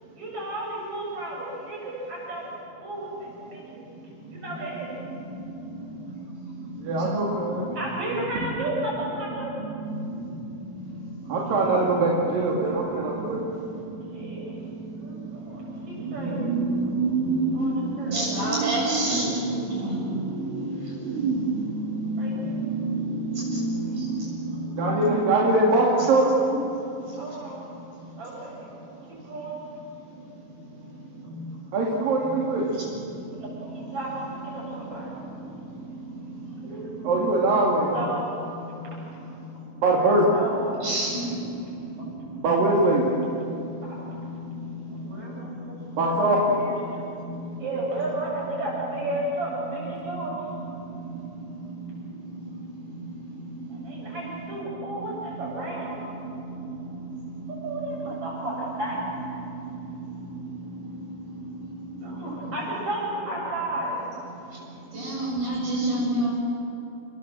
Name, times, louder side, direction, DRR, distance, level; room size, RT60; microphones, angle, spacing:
voice 1, 0.2-2.4 2.8-3.8 4.4-4.9 7.7-9.5 14.1-14.5 15.0-16.4 17.5-18.2 22.2-22.6 27.2-27.7 28.2-28.7 29.1-29.5 33.6-34.1 34.4-35.1 36.6-36.9 37.9-38.3 40.3-40.6 43.8-44.1 44.9-45.8 46.2-46.7 47.6-50.4 53.7-56.0 57.5-59.4 61.9-64.0, right 1 dB, 40° right, -4 dB, 8.6 m, -33 dB
voice 2, 6.9-7.6 8.4-8.5 9.8-10.1 11.3-13.4 16.0-19.6 19.8-24.2 24.6-26.3 31.7-32.7 37.0-38.1 39.8-40.3 42.4-43.0 45.9-46.6, right 2 dB, 75° right, -3 dB, 4.1 m, -24 dB
voice 3, 18.1-20.2 20.8-20.9 23.5-23.6 23.9-24.1 24.6-24.7 40.8-41.2 42.0-42.1 64.9-66.4, right 1 dB, 60° right, -4 dB, 9.3 m, -28 dB
29.5 x 20.5 x 7.7 m, 2.8 s
omnidirectional pair, 4.0 m